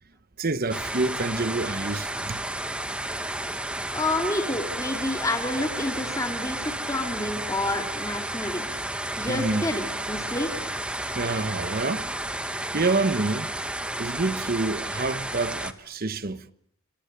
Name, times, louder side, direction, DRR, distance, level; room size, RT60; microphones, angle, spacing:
voice 1, 0.4-2.4 9.1-9.6 11.0-12.1 12.4-13.5 14.0-16.5, right 3 dB, 40° right, 1.0 m, -27 dB
sound 1, 0.7-15.7, right 1 dB, 5° right, 1.0 m, -32 dB
voice 2, 3.9-8.6 9.2-10.5, left 2 dB, 15° left, 2.6 m, -29 dB
28.5 x 24.5 x 6.8 m
head